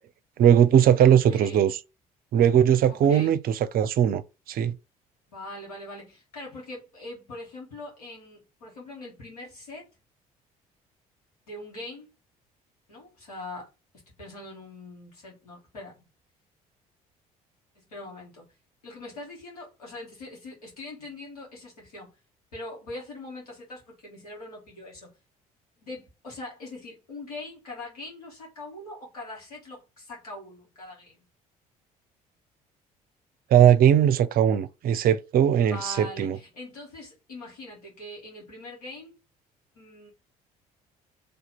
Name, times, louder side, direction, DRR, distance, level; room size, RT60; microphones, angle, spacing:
voice 1, 0.4-1.7 2.3-4.2 4.5-4.7 33.5-36.4, right 9 dB, 50° right, 0.5 m, -19 dB
voice 2, 1.1-1.6 2.9-3.4 5.3-9.9 11.4-12.1 12.9-13.7 13.9-16.1 17.8-18.5 18.8-22.1 22.5-25.1 25.8-31.2 35.6-39.2 39.7-40.1, left 2 dB, 85° left, 2.1 m, -42 dB
3.3 x 2.8 x 4.0 m
hypercardioid pair, 55°, 19 cm